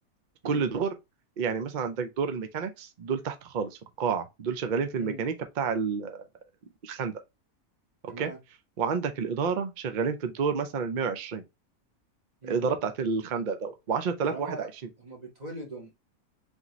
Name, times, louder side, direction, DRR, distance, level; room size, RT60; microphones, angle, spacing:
voice 1, 0.4-0.9 1.4-3.7 4.0-6.2 6.8-7.1 8.2-8.3 8.8-11.4 12.5-14.7, right 5 dB, 65° right, 0.4 m, -29 dB
voice 2, 8.1-8.4 12.4-12.7 14.2-14.7 15.0-15.9, right 2 dB, 30° right, 1.3 m, -40 dB
3.8 x 3.6 x 2.9 m
omnidirectional pair, 1.6 m